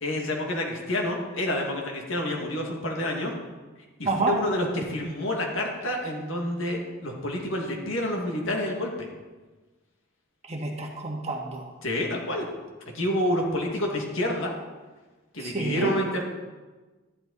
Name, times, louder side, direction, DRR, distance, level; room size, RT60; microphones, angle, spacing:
voice 1, 0.0-3.3 4.0-8.9 11.8-12.5 12.9-14.5 15.3-16.2, left 1 dB, 65° left, 0 dB, 2.1 m, -28 dB
voice 2, 4.0-4.3 10.5-11.7 15.4-15.9, right 3 dB, 30° right, 0 dB, 1.6 m, -28 dB
12.5 x 11.5 x 4.1 m, 1.3 s
head